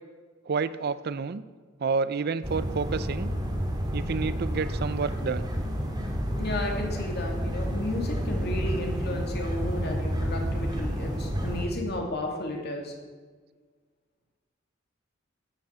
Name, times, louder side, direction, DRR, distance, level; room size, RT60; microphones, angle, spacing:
voice 1, 0.5-1.4 1.8-3.3 3.9-5.5, right 5 dB, 50° right, 15 dB, 0.5 m, -29 dB
sound 1, 2.4-11.7, equal, 20° right, 2.1 m, -30 dB
voice 2, 6.3-12.9, left 1 dB, 55° left, 1 dB, 2.6 m, -33 dB
12.5 x 8.0 x 8.1 m, 1.5 s
head